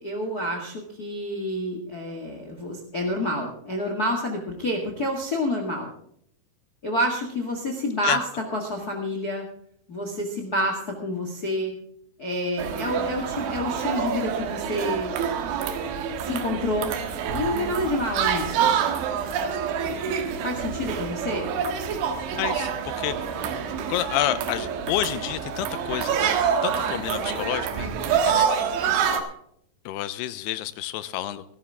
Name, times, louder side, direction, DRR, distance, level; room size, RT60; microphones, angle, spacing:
voice 1, 0.0-5.9 6.8-9.4 9.9-11.7 12.2-15.1 16.2-16.9 17.3-18.7 20.4-21.5, left 1 dB, 55° left, 2 dB, 1.0 m, -28 dB
sound 1, 12.6-29.2, right 7 dB, 85° right, 3.9 m, -27 dB
voice 2, 22.4-22.7 23.0-23.1 23.9-26.2 26.6-28.7 29.9-31.4, left 13 dB, 80° left, 13 dB, 2.5 m, -29 dB
17.0 x 13.0 x 3.6 m, 0.69 s
omnidirectional pair, 5.3 m